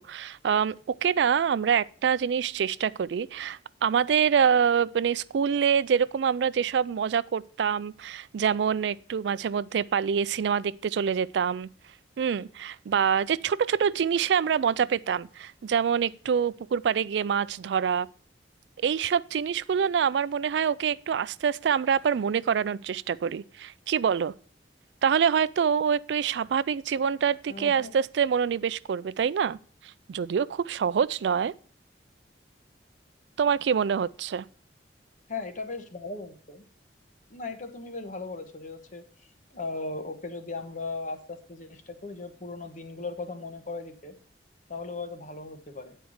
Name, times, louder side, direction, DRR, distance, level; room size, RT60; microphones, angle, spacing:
voice 1, 0.0-11.7 12.2-18.1 18.8-24.3 25.0-29.6 30.1-31.5 33.4-34.5, right 7 dB, 75° right, 0.3 m, -26 dB
voice 2, 27.5-27.9 35.3-36.6 37.3-39.0 39.5-44.2 44.7-46.0, left 3 dB, 45° left, 1.1 m, -37 dB
9.5 x 4.5 x 6.2 m
head